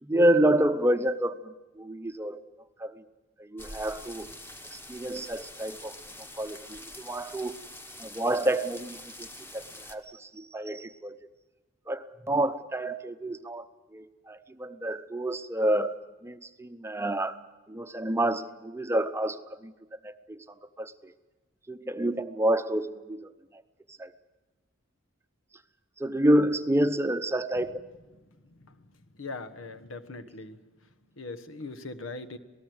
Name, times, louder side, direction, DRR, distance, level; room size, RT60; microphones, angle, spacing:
voice 1, 0.0-2.4 2.8-3.0 3.4-4.3 4.7-5.9 6.4-7.5 8.0-11.2 11.9-13.7 13.9-15.9 16.2-17.4 17.7-19.7 20.0-20.4 20.8-21.1 21.7-23.6 24.0-24.1 26.0-27.8, right 1 dB, 15° right, 10 dB, 0.7 m, -28 dB
sound 1, 3.6-10.0, left 1 dB, 10° left, 1.2 m, -45 dB
voice 2, 29.2-30.6 31.2-32.4, left 3 dB, 85° left, 12 dB, 1.4 m, -40 dB
27.0 x 18.5 x 7.9 m, 1.2 s
head